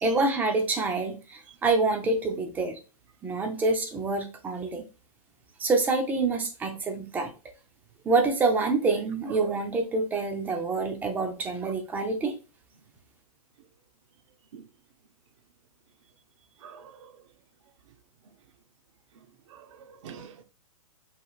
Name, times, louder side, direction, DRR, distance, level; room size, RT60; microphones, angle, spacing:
voice 1, 0.0-2.8 3.2-4.8 5.6-7.3 8.0-12.4, right 3 dB, 10° right, 0.5 m, -26 dB
voice 2, 16.6-17.1 19.5-20.4, right 7 dB, 50° right, 0.8 m, -45 dB
5.6 x 3.2 x 2.4 m
hypercardioid pair, 150°, 19 cm